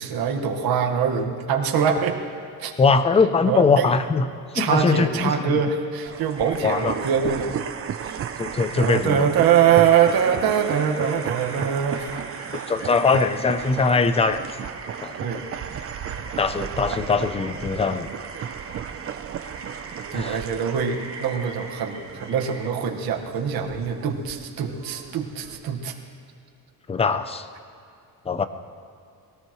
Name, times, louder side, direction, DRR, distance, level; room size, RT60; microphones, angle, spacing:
voice 1, 0.0-2.2 2.6-2.7 3.5-3.9 4.5-7.5 8.0-8.2 8.8-12.1 15.2-15.5 20.1-25.9, right 7 dB, 70° right, 2 dB, 1.6 m, -23 dB
voice 2, 2.8-4.2 4.5-5.5 6.6-6.9 8.4-9.3 12.7-14.5 15.0-15.3 16.4-18.1 20.1-20.4 26.9-27.5 28.3-28.4, left 4 dB, 15° left, 11 dB, 0.5 m, -21 dB
sound 1, 6.0-25.7, right 8 dB, 35° right, 0.6 m, -35 dB
sound 2, 6.3-22.7, right 2 dB, 15° right, 1.5 m, -42 dB
sound 3, 9.8-13.9 14.2-14.6 16.2-16.3 16.5-16.6 16.9-17.0, left 2 dB, 65° left, 3.5 m, -45 dB
22.5 x 18.0 x 3.1 m, 2.5 s
cardioid pair, 160°, 38 cm